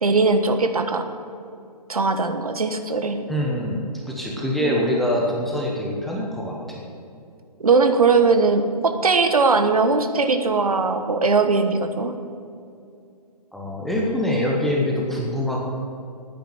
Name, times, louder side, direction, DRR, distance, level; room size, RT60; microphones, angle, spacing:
voice 1, 0.0-1.1 1.9-3.2 4.6-4.9 7.6-12.1, right 4 dB, 60° right, 7 dB, 1.3 m, -20 dB
voice 2, 3.3-6.8 13.5-15.6, left 1 dB, ahead, -3 dB, 0.8 m, -24 dB
10.0 x 9.3 x 9.3 m, 2.5 s
figure-of-eight pair, 140°, 21 cm